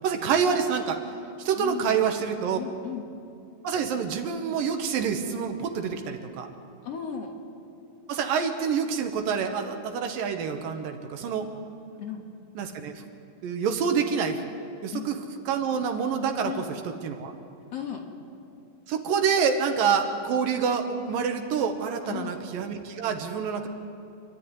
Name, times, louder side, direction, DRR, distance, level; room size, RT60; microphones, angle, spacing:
voice 1, 0.0-1.0 1.4-2.6 3.6-6.5 8.1-11.5 12.6-12.9 13.4-14.4 14.8-15.2 15.5-16.6 17.0-17.3 18.9-23.7, right 6 dB, 75° right, 5 dB, 2.9 m, -27 dB
voice 2, 1.6-2.1 2.6-3.0 6.8-7.3 12.0-12.2 14.9-15.1 16.4-16.7 17.7-18.1 22.0-22.4, left 8 dB, 55° left, 3 dB, 2.3 m, -35 dB
26.5 x 11.5 x 9.7 m, 2.5 s
omnidirectional pair, 4.0 m